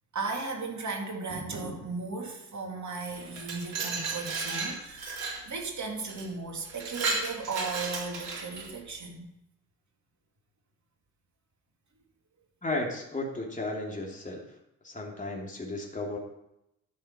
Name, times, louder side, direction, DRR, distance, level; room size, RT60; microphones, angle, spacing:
voice 1, 0.1-9.3, right 4 dB, 45° right, 1 dB, 2.9 m, -36 dB
Glass, 3.2-5.4 6.1-6.3 6.7-8.7, right 4 dB, 80° right, 2.1 m, -34 dB
voice 2, 12.6-14.4 14.8-16.2, left 2 dB, 20° left, -2 dB, 3.2 m, -34 dB
12.0 x 6.4 x 6.1 m, 0.86 s
hypercardioid pair, 40°, 39 cm